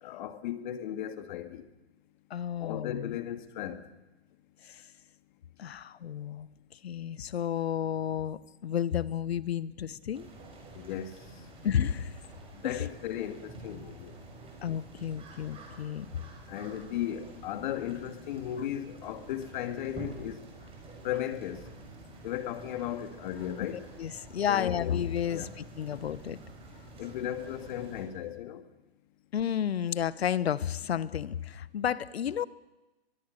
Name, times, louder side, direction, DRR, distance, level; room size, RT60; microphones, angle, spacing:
voice 1, 0.0-1.6 2.6-3.8 10.7-11.1 12.6-14.1 16.5-20.4 21.0-21.6 22.2-23.8 24.5-24.9 25.3-25.5 27.0-28.6, left 11 dB, 45° left, 2.2 m, -36 dB
voice 2, 2.3-3.1 4.6-4.9 5.6-6.5 6.8-10.3 11.6-12.2 12.6-12.8 14.6-16.1 23.7-26.4 29.3-32.4, left 9 dB, 70° left, 1.2 m, -32 dB
sound 1, 10.1-28.0, right 2 dB, 15° right, 6.2 m, -48 dB
23.0 x 22.0 x 6.7 m
hypercardioid pair, 130°, 32 cm